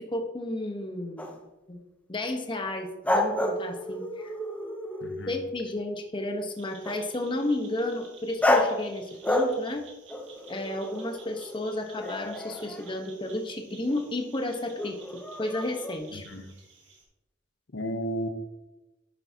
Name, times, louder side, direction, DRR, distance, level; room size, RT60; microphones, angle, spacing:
voice 1, 0.0-1.4 1.7-1.8 2.1-4.3 5.3-9.9 10.5-16.3, left 1 dB, 25° left, 1.0 m, -32 dB
sound 1, 1.2-1.4 3.1-5.3 6.8-7.0 8.4-8.9 9.2-9.8 10.1-12.9 13.9-14.1 14.8-16.0, left 1 dB, 5° left, 0.7 m, -30 dB
voice 2, 5.0-5.3 16.1-16.5 17.7-18.3, equal, 65° left, 0.8 m, -33 dB
sound 2, 6.6-17.0, right 5 dB, 70° right, 2.3 m, -54 dB
10.5 x 7.8 x 2.8 m
head